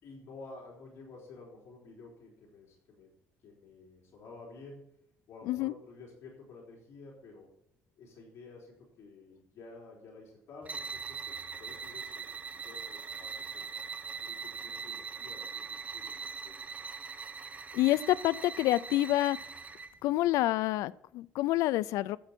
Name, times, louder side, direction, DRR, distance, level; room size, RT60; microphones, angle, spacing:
voice 1, 0.0-3.1 3.4-4.9 5.3-7.5 8.0-13.7 14.2-16.1 16.4-16.6, left 3 dB, 55° left, -3 dB, 3.7 m, -51 dB
sound 1, 10.6-20.0, right 5 dB, 25° right, 0.7 m, -41 dB
voice 2, 17.7-19.4 20.0-22.2, left 16 dB, 90° left, 18 dB, 0.4 m, -28 dB
13.5 x 8.0 x 4.4 m, 0.80 s
cardioid pair, 145°, 5 cm